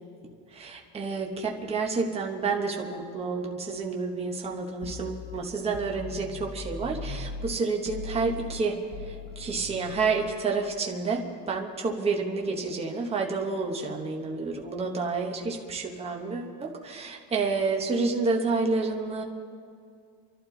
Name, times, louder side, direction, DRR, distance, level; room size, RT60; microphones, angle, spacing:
voice 1, 0.5-8.8 9.0-19.2, right 4 dB, 15° right, 1 dB, 1.0 m, -29 dB
sound 1, 4.8-7.5 7.9-10.3, left 4 dB, 70° left, 1.4 m, -39 dB
28.0 x 12.0 x 3.9 m, 2.3 s
cardioid pair, 175°, 44 cm